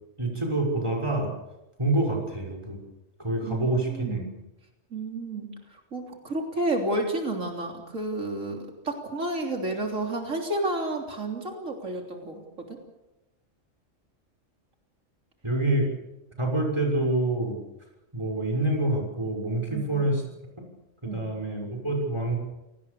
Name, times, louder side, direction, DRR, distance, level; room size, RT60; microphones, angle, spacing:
voice 1, 0.2-1.3 1.8-2.8 3.2-4.2 15.4-15.9 16.4-17.6 18.1-20.2 21.0-22.4, right 2 dB, 20° right, 1 dB, 6.0 m, -26 dB
voice 2, 3.4-4.3 4.9-5.5 5.9-8.6 8.8-12.4 12.7-12.8 19.7-20.2 21.0-21.3, right 2 dB, 85° right, 2 dB, 3.8 m, -31 dB
28.0 x 19.0 x 6.9 m, 0.96 s
omnidirectional pair, 1.3 m